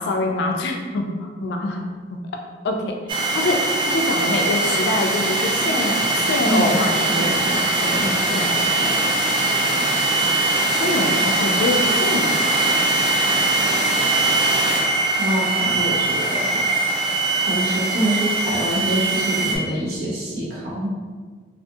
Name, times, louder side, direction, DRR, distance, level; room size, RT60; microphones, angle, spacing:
voice 1, 0.0-1.9 2.6-2.9 3.3-6.0 6.3-7.5 7.8-8.9 10.8-12.4, left 2 dB, 65° left, 3 dB, 0.3 m, -25 dB
sound 1, 3.1-19.6, right 2 dB, 25° right, 0.3 m, -21 dB
voice 2, 6.4-6.9 7.2-8.3 15.2-16.7 17.4-20.9, right 1 dB, 60° right, -5 dB, 0.8 m, -25 dB
2.7 x 2.4 x 2.3 m, 1.5 s
head